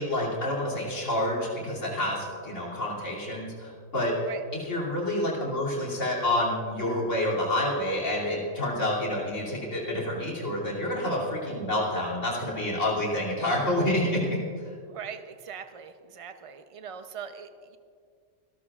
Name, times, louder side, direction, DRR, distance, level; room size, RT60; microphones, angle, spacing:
voice 1, 0.0-4.2 4.5-14.4, left 1 dB, 85° left, -3 dB, 3.3 m, -28 dB
voice 2, 14.9-17.8, right 7 dB, 35° right, 8 dB, 0.7 m, -41 dB
27.5 x 13.0 x 2.4 m, 2.2 s
omnidirectional pair, 1.2 m